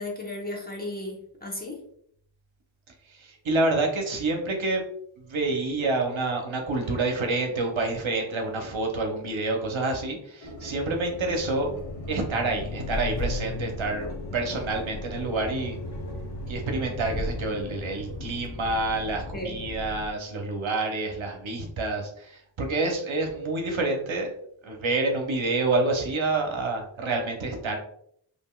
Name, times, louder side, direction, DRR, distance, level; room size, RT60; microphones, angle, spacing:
voice 1, 0.0-1.8 19.3-19.6, left 1 dB, 20° left, -2 dB, 0.9 m, -35 dB
voice 2, 3.1-4.8 5.2-11.7 12.1-15.8 16.5-24.3 24.6-27.8, right 2 dB, 70° right, 2 dB, 0.8 m, -28 dB
sound 1, 6.6-17.4, left 1 dB, 90° left, 1.4 m, -47 dB
sound 2, 10.5-20.1, left 2 dB, 55° left, 0.6 m, -36 dB
3.4 x 2.6 x 2.3 m, 0.68 s
wide cardioid pair, 50°, 48 cm